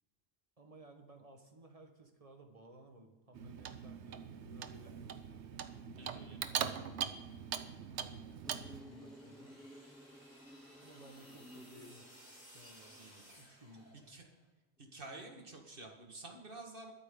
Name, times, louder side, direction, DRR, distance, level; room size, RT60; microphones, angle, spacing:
voice 1, 0.6-5.1 5.7-7.1 7.8-9.6 10.8-12.1 12.5-13.0 13.4-13.9, right 1 dB, 35° right, 4 dB, 1.5 m, -57 dB
Clock, 3.3-8.8, right 8 dB, 85° right, 1.0 m, -42 dB
voice 2, 6.0-6.4 13.0-13.2 14.1-14.2 14.8-16.9, right 2 dB, 55° right, 2 dB, 1.9 m, -50 dB
Insect, 8.4-13.4, equal, ahead, 0.5 m, -56 dB
sound 1, 8.5-14.4, equal, 25° left, 3.6 m, -59 dB
22.0 x 8.2 x 3.8 m, 1.1 s
omnidirectional pair, 1.1 m